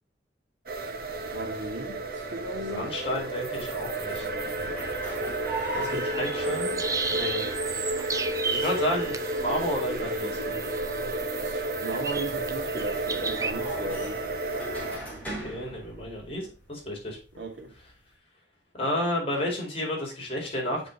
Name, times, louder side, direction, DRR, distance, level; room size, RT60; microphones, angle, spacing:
sound 1, 0.7-15.0, right 2 dB, 60° right, 1.3 m, -32 dB
sound 2, 1.0-18.1, right 1 dB, 10° left, 4.3 m, -42 dB
voice 1, 1.2-2.9 5.7-6.1 8.5-8.7 11.1-14.2 17.4-17.7, right 1 dB, 85° right, 2.1 m, -37 dB
voice 2, 2.4-4.3 5.7-6.8 7.1-7.5 8.5-10.4 15.4-17.2 18.7-20.9, left 1 dB, 35° left, 4.4 m, -31 dB
sound 3, 5.8-13.5, right 4 dB, 20° right, 0.6 m, -34 dB
8.3 x 6.3 x 2.9 m
head